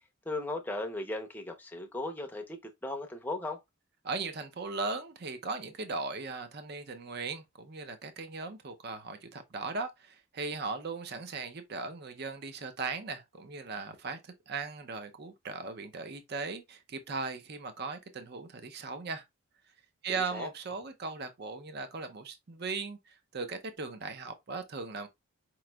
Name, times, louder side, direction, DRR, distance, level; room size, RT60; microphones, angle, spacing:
voice 1, 0.3-3.6 20.1-20.5, left 2 dB, 10° left, 0.6 m, -37 dB
voice 2, 4.0-19.2 20.0-25.1, right 4 dB, 50° right, 0.5 m, -38 dB
4.9 x 3.0 x 2.2 m
head